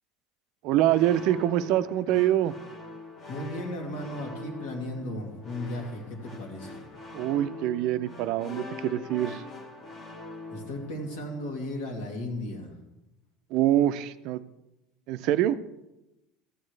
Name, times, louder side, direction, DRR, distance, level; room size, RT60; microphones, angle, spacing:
voice 1, 0.6-2.5 7.1-9.4 13.5-14.4 15.1-15.6, right 13 dB, 50° right, 13 dB, 0.4 m, -25 dB
sound 1, 0.8-11.8, left 2 dB, 25° left, 1.1 m, -43 dB
voice 2, 3.3-6.8 10.5-12.7, left 1 dB, 80° left, 0 dB, 2.3 m, -35 dB
14.0 x 8.8 x 3.2 m, 0.95 s
cardioid pair, 180°, 0 cm